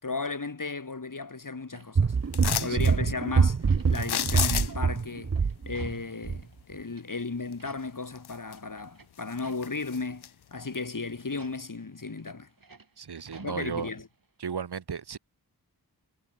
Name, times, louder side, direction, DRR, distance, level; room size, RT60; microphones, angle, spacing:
voice 1, 0.0-2.1 2.6-5.4 5.6-12.5 13.4-14.1, left 3 dB, 55° left, 3.5 m, -35 dB
sound 1, 1.7-2.9 3.2-6.6 6.9-7.1 7.4-8.1 8.4-10.1 10.6-10.7 11.3-14.2 14.5-14.6, right 4 dB, 60° right, 4.2 m, -53 dB
sound 2, 1.9-6.0 6.2-6.4, right 5 dB, 40° right, 0.8 m, -25 dB
sound 3, 2.3-2.9 3.9-5.0 7.5-7.6 8.1-8.8 9.2-10.3 10.7-10.8, left 10 dB, 85° left, 0.6 m, -31 dB
voice 2, 2.5-2.8 13.0-13.9 14.4-15.2, right 6 dB, 80° right, 1.4 m, -35 dB
cardioid pair, 45°, 39 cm